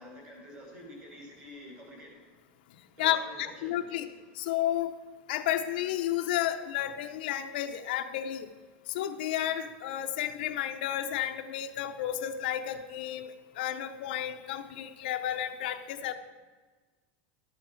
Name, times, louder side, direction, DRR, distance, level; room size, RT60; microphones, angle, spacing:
voice 1, 0.0-2.1 3.0-4.0, equal, 25° right, 0 dB, 3.3 m, -48 dB
voice 2, 3.0-4.1 4.3-4.9 5.3-8.5 8.9-13.3 13.6-16.1, left 12 dB, 70° left, 7 dB, 0.7 m, -32 dB
12.0 x 8.4 x 4.5 m, 1.3 s
supercardioid pair, 175°, 6 cm